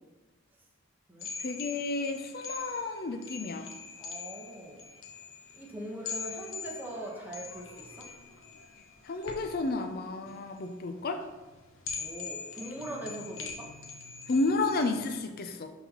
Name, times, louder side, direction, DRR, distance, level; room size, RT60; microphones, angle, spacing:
sound 1, 1.2-15.2, left 5 dB, 65° left, 0.9 m, -43 dB
voice 1, 1.4-3.7 9.0-11.3 14.3-15.7, left 3 dB, 45° left, 6 dB, 0.5 m, -31 dB
voice 2, 4.0-4.8 5.5-8.1 12.0-13.7, right 1 dB, 10° right, -3 dB, 1.1 m, -41 dB
11.0 x 4.1 x 3.0 m, 1.2 s
head